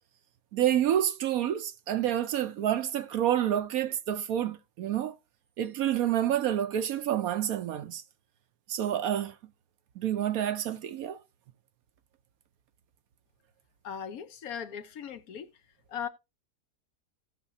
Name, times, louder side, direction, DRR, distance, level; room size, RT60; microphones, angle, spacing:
voice 1, 0.5-5.1 5.6-8.0 8.7-9.3 10.0-11.2, right 11 dB, 70° right, 1.0 m, -28 dB
voice 2, 13.8-15.5 15.9-16.1, left 8 dB, 65° left, 1.2 m, -38 dB
17.5 x 6.0 x 2.7 m
omnidirectional pair, 1.7 m